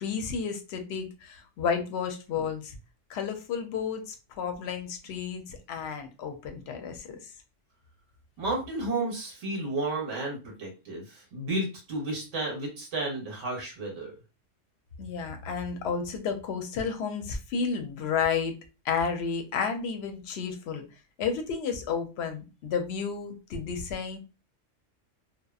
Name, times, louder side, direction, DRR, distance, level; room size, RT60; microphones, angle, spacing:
voice 1, 0.0-2.8 3.1-7.3 15.0-18.5 18.8-20.8 21.2-24.2, left 6 dB, 65° left, 6 dB, 0.7 m, -32 dB
voice 2, 8.4-14.1, right 2 dB, 80° right, 0 dB, 1.2 m, -32 dB
2.8 x 2.0 x 2.3 m, 0.30 s
omnidirectional pair, 1.3 m